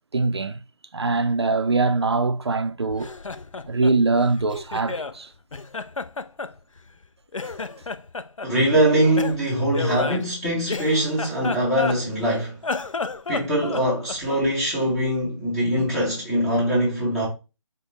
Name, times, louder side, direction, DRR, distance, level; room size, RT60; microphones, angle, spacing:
voice 1, 0.1-0.6 0.9-3.1 3.7-5.3, right 3 dB, 55° right, 0.4 m, -22 dB
Laughter, 2.9-5.2 5.5-7.0 7.3-8.5 9.2-12.3 12.6-14.5, left 4 dB, 80° left, 0.5 m, -32 dB
voice 2, 8.4-12.6 13.3-17.3, right 1 dB, ahead, 0.5 m, -22 dB
5.1 x 2.1 x 4.0 m
figure-of-eight pair, 155°, 16 cm